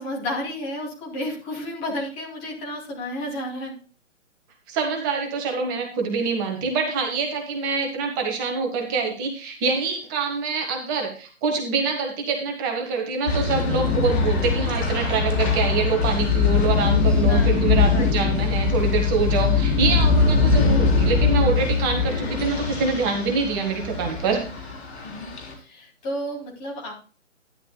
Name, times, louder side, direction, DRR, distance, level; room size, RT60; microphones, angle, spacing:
voice 1, 0.0-3.8 17.3-17.6 17.9-18.1 25.0-25.3 25.6-26.9, left 1 dB, 15° left, -2 dB, 2.7 m, -31 dB
voice 2, 4.7-24.4, right 4 dB, 15° right, 2 dB, 1.1 m, -25 dB
sound 1, 13.3-25.5, left 4 dB, 55° left, 3.8 m, -22 dB
12.0 x 10.5 x 2.3 m, 0.37 s
figure-of-eight pair, 140°, 39 cm